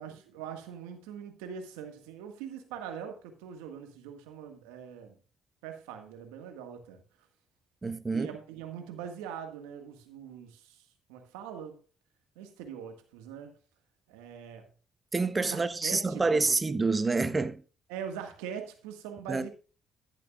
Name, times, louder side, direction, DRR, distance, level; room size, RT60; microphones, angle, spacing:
voice 1, 0.0-5.2 5.6-7.0 8.1-11.8 12.3-13.5 14.1-14.7 15.4-16.5 17.9-19.5, right 8 dB, 85° right, 1.6 m, -42 dB
voice 2, 7.8-8.3 15.1-17.6 19.3-19.4, right 3 dB, 30° right, 1.1 m, -27 dB
12.0 x 11.0 x 2.4 m
hypercardioid pair, 55°, 0 cm